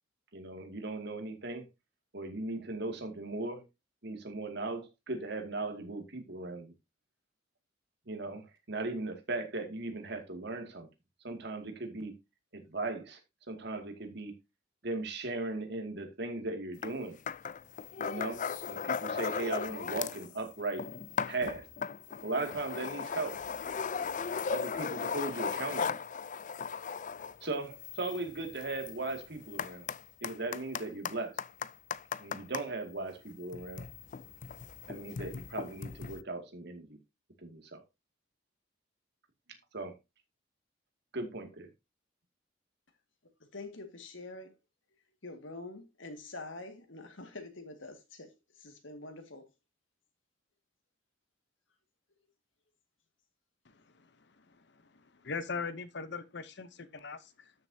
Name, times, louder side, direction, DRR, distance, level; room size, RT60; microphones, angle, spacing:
voice 1, 0.3-1.7 2.1-3.6 4.0-6.7 8.1-10.9 11.2-12.1 12.5-13.2 13.5-14.3 14.8-17.2 18.0-20.9 21.3-21.7 22.2-23.4 24.5-26.0 27.4-29.9 30.2-31.4 32.2-33.8 34.9-37.0 37.4-37.8 39.7-39.9 41.1-41.7, right 2 dB, 60° right, 2.4 m, -38 dB
sound 1, 16.8-17.0 17.3-20.3 20.6-32.7 33.4-36.2, left 6 dB, 40° left, 0.4 m, -37 dB
voice 2, 43.5-44.6 45.2-49.5, left 2 dB, 80° left, 2.2 m, -46 dB
voice 3, 53.6-57.5, left 4 dB, 60° left, 0.9 m, -41 dB
13.0 x 6.8 x 2.8 m
head